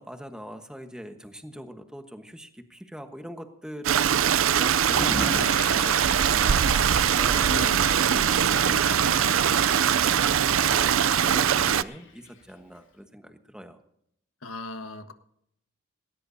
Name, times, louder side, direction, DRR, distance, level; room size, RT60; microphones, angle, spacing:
voice 1, 0.0-13.8, equal, 5° right, 6 dB, 1.2 m, -42 dB
Stream, 3.8-11.8, right 8 dB, 85° right, 0.5 m, -22 dB
sound 1, 4.0-9.0, right 3 dB, 35° right, 2.5 m, -48 dB
Water / Toilet flush, 4.7-12.5, left 3 dB, 65° left, 4.1 m, -38 dB
voice 2, 7.4-7.9 14.4-15.1, left 1 dB, 90° left, 7 dB, 1.5 m, -36 dB
19.0 x 18.5 x 2.7 m, 0.74 s
head